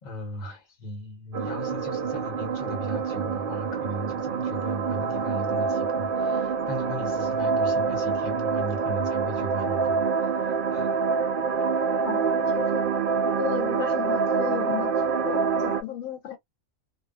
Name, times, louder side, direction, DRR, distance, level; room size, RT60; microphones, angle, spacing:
voice 1, 0.0-11.0, equal, 35° left, 1.1 m, -37 dB
sound 1, 1.3-15.8, right 5 dB, 70° right, 0.5 m, -26 dB
voice 2, 12.0-12.8 13.4-16.4, left 12 dB, 80° left, 1.0 m, -34 dB
2.5 x 2.3 x 2.3 m
omnidirectional pair, 1.4 m